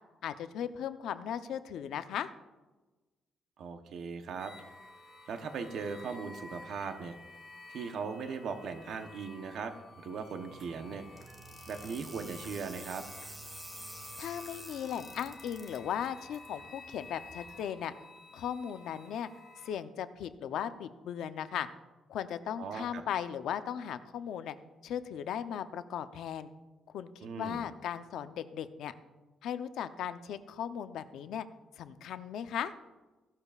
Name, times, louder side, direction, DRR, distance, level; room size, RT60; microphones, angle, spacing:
voice 1, 0.2-2.3 14.2-17.9 18.3-19.3 19.6-21.7 22.1-24.6 24.8-26.5 26.9-27.1 27.4-28.9 29.4-31.5 31.8-32.7, left 9 dB, 80° left, 10 dB, 0.7 m, -37 dB
voice 2, 3.6-4.5 5.3-7.2 7.7-11.0 11.7-13.0 22.6-23.0 27.2-27.6, right 5 dB, 60° right, 7 dB, 0.9 m, -39 dB
sound 1, 4.4-19.7, left 3 dB, 55° left, 3.5 m, -52 dB
sound 2, 10.5-17.7, right 3 dB, 45° right, 1.9 m, -55 dB
sound 3, 11.2-15.8, right 1 dB, 15° right, 1.4 m, -48 dB
16.0 x 12.0 x 2.4 m, 1.2 s
cardioid pair, 165°, 0 cm